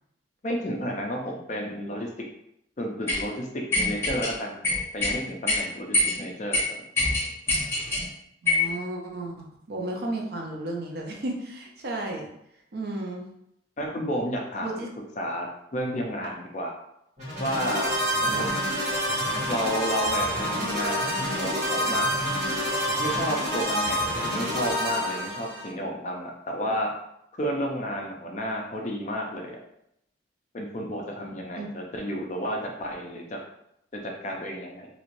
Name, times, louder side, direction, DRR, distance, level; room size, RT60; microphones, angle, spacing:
voice 1, 0.4-2.1 2.8-4.5 4.9-6.6 13.8-14.9 15.2-16.7 17.4-18.5 19.5-22.1 23.0-26.9 27.4-29.6 30.5-33.4 33.9-34.9, equal, 40° left, 1 dB, 0.5 m, -31 dB
sound 1, 3.1-3.2 3.7-4.3 4.6-5.1 5.5-5.6 5.9-6.2 6.5-6.6 7.0-8.0 8.5-8.7, left 2 dB, 15° left, 0.9 m, -24 dB
voice 2, 8.4-12.3 12.7-13.3 14.6-14.9 16.2-16.3 18.3-18.6 31.6-31.7, right 2 dB, 55° right, 0 dB, 0.6 m, -33 dB
sound 2, 17.2-25.7, equal, 35° right, 1.4 m, -27 dB
3.0 x 2.8 x 2.5 m, 0.78 s
head